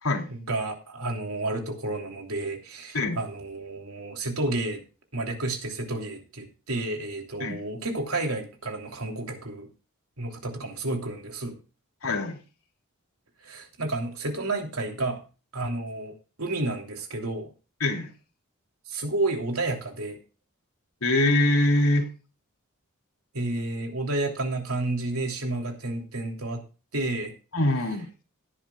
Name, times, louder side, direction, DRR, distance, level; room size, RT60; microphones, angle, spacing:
voice 1, 0.3-4.8 5.1-9.7 10.2-11.5 13.4-15.2 15.5-16.1 16.4-17.5 18.9-20.2 23.3-26.6 26.9-27.3, right 2 dB, 80° right, 3 dB, 3.1 m, -31 dB
voice 2, 12.0-12.4 17.8-18.1 21.0-22.1 27.5-28.1, left 1 dB, 70° left, 1 dB, 3.4 m, -23 dB
17.5 x 10.5 x 2.4 m, 0.33 s
head